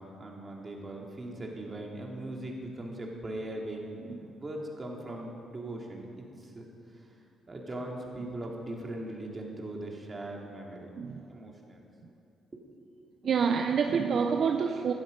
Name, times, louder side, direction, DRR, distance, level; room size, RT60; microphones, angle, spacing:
voice 1, 0.0-4.0 4.4-10.9 11.3-11.9 12.5-12.6 13.0-13.1, right 1 dB, 30° right, 0 dB, 2.7 m, -40 dB
voice 2, 13.2-14.9, right 6 dB, 60° right, 6 dB, 0.6 m, -27 dB
17.0 x 11.5 x 5.3 m, 2.6 s
cardioid pair, 90°, 0 cm